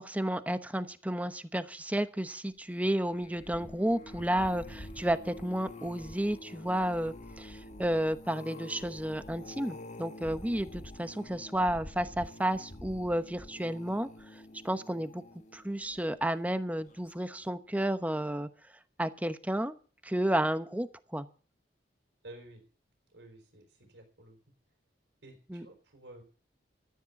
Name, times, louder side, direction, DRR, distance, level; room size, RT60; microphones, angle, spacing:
voice 1, 0.0-15.2 15.5-18.5 19.0-19.8 20.0-21.3 25.5-25.6, right 1 dB, 10° right, 11 dB, 0.9 m, -32 dB
sound 1, 3.0-16.3 16.9-17.2 17.4-17.5, left 1 dB, 45° left, 1.3 m, -47 dB
voice 2, 22.2-22.6 23.1-24.4 25.2-26.2, right 1 dB, 80° right, 3 dB, 4.2 m, -52 dB
14.0 x 10.5 x 7.0 m, 0.40 s
head